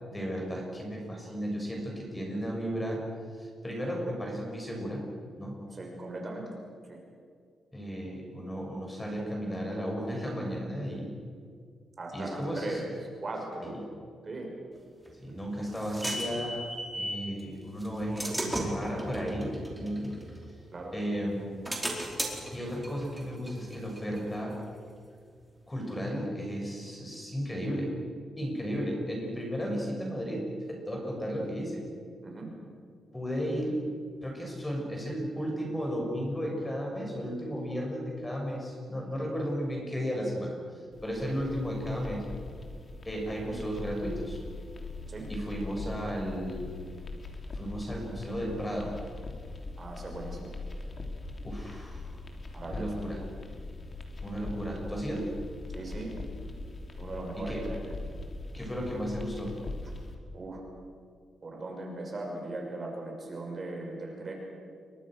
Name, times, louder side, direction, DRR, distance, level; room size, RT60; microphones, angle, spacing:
voice 1, 0.1-3.1 3.4-5.1 5.4-5.6 7.7-11.1 12.1-12.8 13.6-13.8 15.2-16.7 16.9-20.2 20.9-21.5 22.5-24.6 25.7-27.9 28.4-31.9 33.1-33.8 34.2-40.6 41.0-42.3 43.1-44.4 45.3-46.7 47.5-49.0 51.4-52.0 52.6-53.2 54.2-55.3 57.4-57.7 58.5-59.6, equal, 15° left, 0 dB, 7.1 m, -34 dB
voice 2, 5.7-6.5 6.9-7.0 12.0-12.9 13.2-13.8 14.2-14.5 20.7-20.9 32.2-32.5 45.1-45.3 49.8-50.5 52.5-53.0 55.7-56.1 57.0-57.8 60.3-60.6 61.4-64.3, right 2 dB, 35° right, 1 dB, 5.8 m, -38 dB
sound 1, 15.1-17.3 17.8-20.9 21.3-24.8, right 1 dB, 5° right, 4.5 m, -36 dB
sound 2, 40.9-60.1, left 2 dB, 35° left, 3.3 m, -41 dB
29.5 x 23.5 x 6.5 m, 2.1 s
cardioid pair, 125°, 0 cm